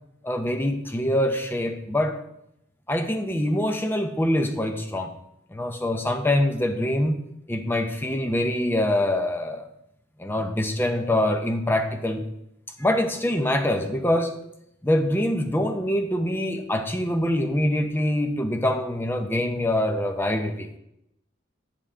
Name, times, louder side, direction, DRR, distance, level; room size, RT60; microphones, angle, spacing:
voice 1, 0.2-2.2 2.9-5.1 5.5-7.2 7.5-9.7 10.2-12.2 12.8-14.3 14.8-20.7, left 1 dB, 10° left, 6 dB, 0.6 m, -24 dB
8.5 x 5.5 x 3.7 m, 0.81 s
head